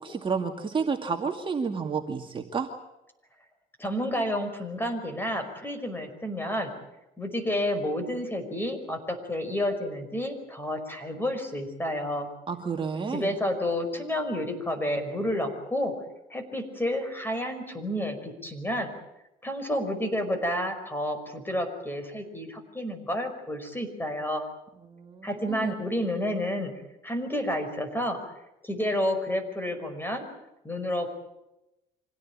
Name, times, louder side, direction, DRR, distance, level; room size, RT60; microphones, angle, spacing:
voice 1, 0.0-2.7 12.5-13.4 24.8-25.8, right 5 dB, 30° right, 2 dB, 2.3 m, -31 dB
voice 2, 3.8-6.7 7.2-12.3 13.1-15.9 16.3-18.9 19.4-24.4 25.2-26.7 27.0-28.2 28.6-30.3 30.6-31.1, left 1 dB, 10° left, 7 dB, 5.4 m, -30 dB
26.0 x 17.5 x 8.8 m, 0.94 s
cardioid pair, 110°, 17 cm